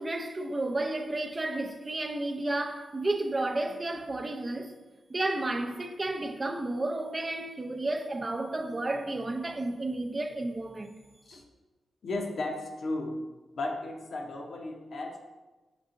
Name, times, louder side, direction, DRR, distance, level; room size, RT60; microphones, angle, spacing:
voice 1, 0.0-4.7 5.1-11.0, right 2 dB, 40° right, 0.5 m, -32 dB
voice 2, 12.0-13.2 13.5-15.2, left 2 dB, 70° left, 0.7 m, -34 dB
5.3 x 3.5 x 2.5 m
supercardioid pair, 40°, 0 cm